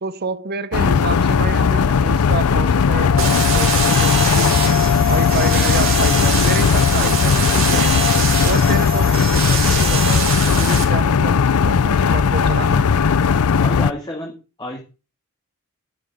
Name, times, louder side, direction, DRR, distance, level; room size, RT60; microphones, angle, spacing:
voice 1, 0.0-4.6 5.1-8.1 8.4-12.9, right 4 dB, 45° right, 0.8 m, -28 dB
sound 1, 0.7-13.9, left 6 dB, 80° left, 0.5 m, -17 dB
sound 2, 3.1-9.2, left 11 dB, 60° left, 0.9 m, -27 dB
sound 3, 3.2-10.8, right 6 dB, 65° right, 3.4 m, -24 dB
voice 2, 13.3-14.8, left 1 dB, 20° left, 1.9 m, -31 dB
11.5 x 9.9 x 3.6 m
head